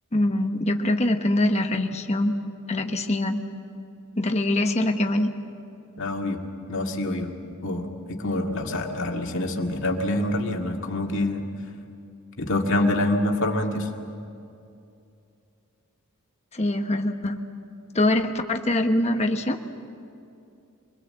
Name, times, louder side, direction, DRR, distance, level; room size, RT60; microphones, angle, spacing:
voice 1, 0.1-2.3 2.7-3.4 4.2-5.3 16.5-17.4 17.9-19.6, left 1 dB, 30° left, 5 dB, 1.2 m, -23 dB
voice 2, 6.0-6.4 6.7-7.3 7.6-11.4 12.4-13.9, left 1 dB, 60° left, 2 dB, 2.0 m, -26 dB
25.0 x 21.0 x 7.8 m, 2.6 s
head